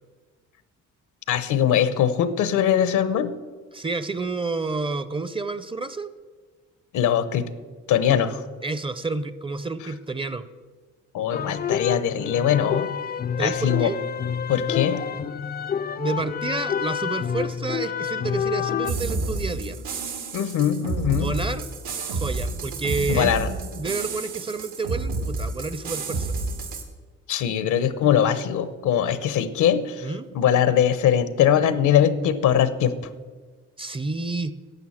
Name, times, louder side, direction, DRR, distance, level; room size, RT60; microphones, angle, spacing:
voice 1, 1.3-3.3 6.9-7.5 7.9-8.4 11.1-12.9 13.4-13.9 14.5-15.0 20.3-21.4 23.1-23.5 27.3-32.9, left 9 dB, 80° left, 14 dB, 0.9 m, -21 dB
voice 2, 3.7-6.1 8.6-10.5 13.4-14.0 16.0-19.8 21.0-21.7 22.1-23.4 23.7-26.3 30.0-30.3 33.8-34.5, right 3 dB, 20° right, 14 dB, 0.5 m, -29 dB
sound 1, 11.3-18.9, left 7 dB, 30° left, 0.4 m, -28 dB
sound 2, 18.8-26.8, right 3 dB, 85° right, 1.8 m, -30 dB
11.0 x 7.1 x 7.2 m, 1.4 s
cardioid pair, 90°, 30 cm